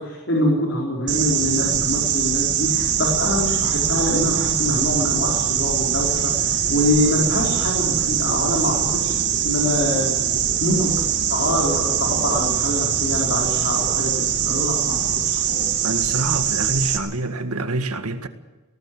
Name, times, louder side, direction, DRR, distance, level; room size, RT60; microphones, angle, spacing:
voice 1, 0.0-9.1 9.4-10.1 10.6-10.9 11.3-15.8, left 1 dB, 55° left, 4.6 m, -24 dB
sound 1, 1.1-17.0, right 9 dB, 50° right, 2.4 m, -22 dB
voice 2, 15.8-18.3, right 2 dB, 90° right, 1.9 m, -26 dB
19.5 x 18.5 x 7.8 m
head